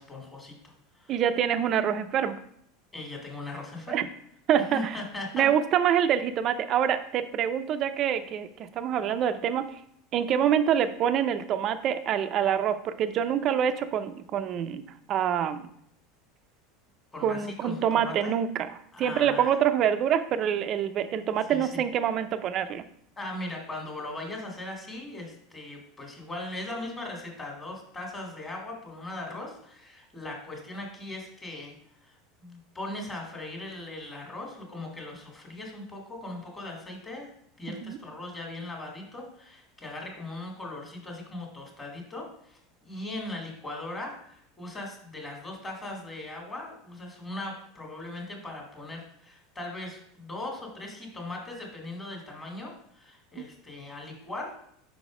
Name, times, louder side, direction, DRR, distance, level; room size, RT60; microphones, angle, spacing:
voice 1, 0.0-1.1 2.9-4.1 4.6-5.5 17.1-18.3 18.9-19.5 21.5-21.7 23.2-31.7 32.0-32.2 32.4-37.3 37.6-54.5, left 2 dB, 15° left, 1 dB, 1.7 m, -39 dB
voice 2, 1.1-2.4 3.9-4.1 4.5-5.0 5.3-9.8 10.1-14.8 15.1-15.7 17.2-18.7 19.0-22.9 37.7-38.0 53.4-53.5, right 9 dB, 40° right, 11 dB, 0.5 m, -26 dB
5.5 x 4.1 x 4.9 m, 0.68 s
supercardioid pair, 145°, 0 cm